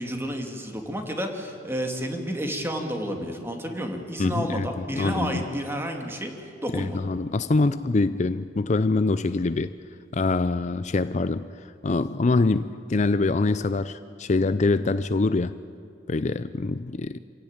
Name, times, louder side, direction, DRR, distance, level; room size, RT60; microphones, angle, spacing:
voice 1, 0.0-6.3 6.6-7.0, equal, 15° right, 3 dB, 2.4 m, -30 dB
voice 2, 4.2-5.4 6.7-9.9 10.1-15.6 16.1-17.2, left 3 dB, 40° left, 13 dB, 0.5 m, -25 dB
26.5 x 16.5 x 8.8 m, 2.4 s
head